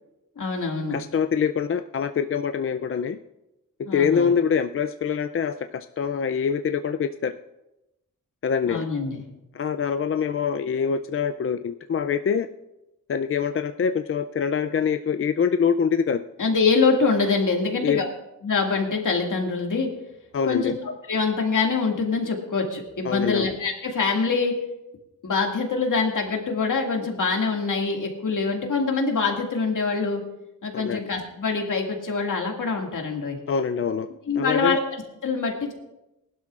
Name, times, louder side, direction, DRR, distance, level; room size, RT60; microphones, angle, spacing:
voice 1, 0.4-1.0 3.9-4.3 8.7-9.2 16.4-18.1 18.4-19.9 20.5-24.6 25.2-30.2 30.6-33.4 34.3-34.8 35.2-35.7, left 4 dB, 65° left, 1 dB, 2.2 m, -24 dB
voice 2, 0.9-3.2 3.9-7.3 8.4-8.8 9.5-12.5 13.1-16.2 17.8-18.0 20.3-20.8 23.0-23.5 30.7-31.0 33.5-34.1 34.4-34.8, left 6 dB, 40° left, 9 dB, 0.4 m, -24 dB
19.5 x 12.0 x 2.5 m, 0.93 s
wide cardioid pair, 95°, 33 cm